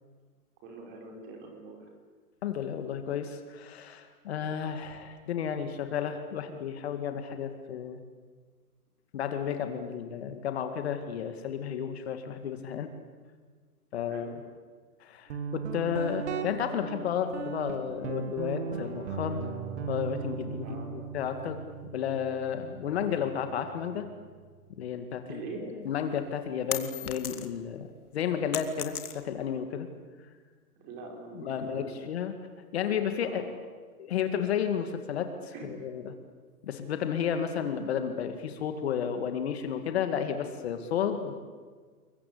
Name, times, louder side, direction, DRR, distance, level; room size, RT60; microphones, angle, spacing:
voice 1, 0.6-1.8 14.1-14.3 20.6-20.9 25.3-25.6 30.8-32.1 33.2-33.5 35.5-35.7, right 4 dB, 20° right, 2 dB, 5.3 m, -43 dB
voice 2, 2.4-8.0 9.1-12.9 13.9-14.3 15.0-19.4 19.9-21.6 21.9-24.1 24.8-25.4 25.8-27.9 28.1-29.9 31.4-32.3 32.7-33.4 34.0-36.1 36.6-41.3, left 8 dB, 45° left, 8 dB, 2.2 m, -32 dB
Guitar, 15.3-24.8, right 5 dB, 50° right, 2.6 m, -38 dB
sound 1, 25.9-27.7 28.1-29.5, left 8 dB, 70° left, 2.7 m, -37 dB
30.0 x 22.5 x 8.6 m, 1.5 s
hypercardioid pair, 165°, 46 cm